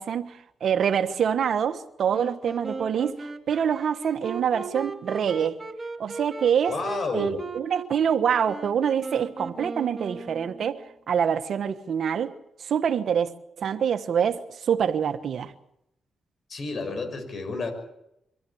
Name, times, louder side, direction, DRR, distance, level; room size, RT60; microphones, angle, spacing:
voice 1, 0.0-5.6 6.0-6.7 7.1-12.3 12.6-13.3 13.6-15.5, right 8 dB, 65° right, 1.3 m, -25 dB
Wind instrument woodwind instrument, 2.1-10.9, right 3 dB, 25° right, 2.4 m, -37 dB
voice 2, 6.7-7.4 16.5-17.7, left 3 dB, 55° left, 6.4 m, -30 dB
24.0 x 15.0 x 8.7 m
cardioid pair, 75°, 0 cm